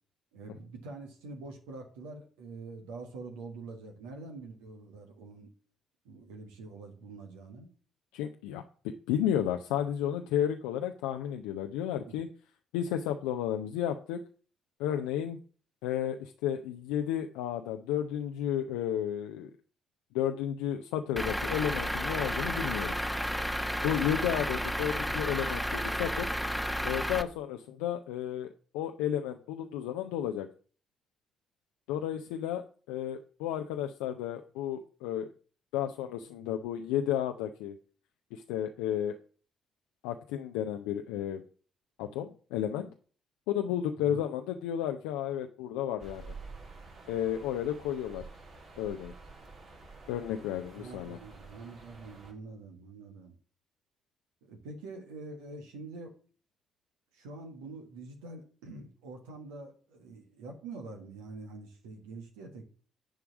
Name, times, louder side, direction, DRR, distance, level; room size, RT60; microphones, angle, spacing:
voice 1, 0.3-5.5 6.0-7.7 12.0-12.2 44.0-44.2 50.8-53.4 54.4-56.1 57.1-62.6, right 3 dB, 75° right, 3 dB, 1.4 m, -45 dB
voice 2, 8.1-8.6 9.1-12.3 12.7-14.2 14.8-15.4 15.8-19.5 20.1-23.0 23.8-26.3 26.8-28.5 28.7-30.5 31.9-35.3 35.7-37.8 38.3-39.2 40.0-41.4 42.0-42.9 43.5-46.3 47.1-48.2 48.8-49.1 50.1-51.2, left 10 dB, 70° left, 5 dB, 0.5 m, -32 dB
Truck / Idling, 21.2-27.2, equal, ahead, 1.0 m, -32 dB
sound 1, 46.0-52.3, right 3 dB, 55° right, 2.4 m, -49 dB
10.0 x 4.7 x 6.0 m, 0.40 s
figure-of-eight pair, 40°, 0 cm